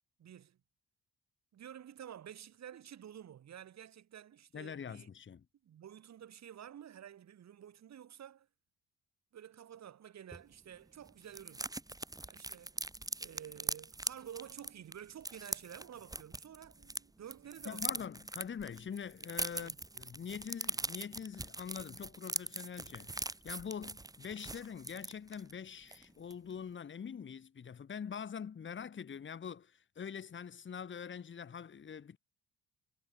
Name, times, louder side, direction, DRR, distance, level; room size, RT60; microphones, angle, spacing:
voice 1, 0.2-0.6 1.5-5.1 5.6-8.5 9.3-11.7 12.2-12.8 13.2-18.1 19.5-19.8, right 10 dB, 60° right, 4.0 m, -51 dB
voice 2, 4.5-5.4 17.6-32.2, left 7 dB, 40° left, 1.7 m, -44 dB
sound 1, 10.3-10.4 10.7-10.8 11.0-17.0 17.3-25.5 25.9-26.1 26.3-26.6, right 2 dB, 10° right, 1.8 m, -41 dB
cardioid pair, 90°, 30 cm